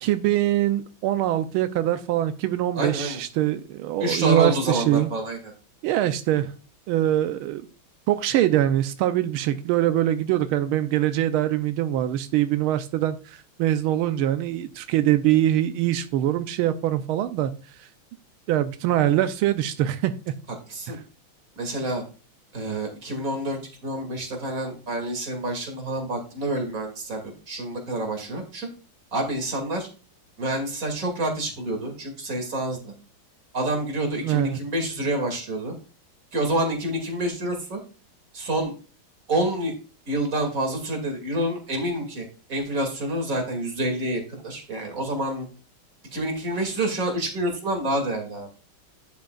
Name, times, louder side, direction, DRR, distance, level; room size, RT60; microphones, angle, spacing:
voice 1, 0.0-5.1 5.8-6.5 6.9-7.7 8.1-17.5 17.8-17.9 18.5-20.3 20.9-21.0 34.2-34.6, right 12 dB, 90° right, 10 dB, 1.5 m, -23 dB
voice 2, 2.7-3.2 4.0-5.4 20.7-21.0 21.6-22.0 22.5-28.7 29.1-29.9 30.4-32.9 33.5-35.7 36.3-37.8 38.3-38.7 39.3-39.7 40.1-45.5 46.1-48.5, right 1 dB, 40° right, 3 dB, 2.8 m, -28 dB
10.5 x 7.7 x 2.4 m, 0.35 s
omnidirectional pair, 2.3 m